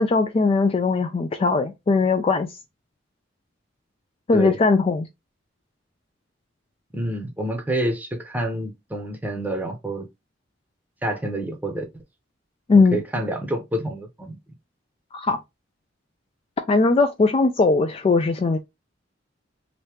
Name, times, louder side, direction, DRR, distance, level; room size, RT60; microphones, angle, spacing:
voice 1, 0.0-2.5 4.3-5.1 12.7-13.0 15.1-15.4 16.7-18.6, left 3 dB, 30° left, 0.3 m, -19 dB
voice 2, 6.9-10.1 11.0-12.0 12.7-14.4, right 1 dB, 10° right, 0.7 m, -28 dB
3.0 x 2.7 x 3.3 m
head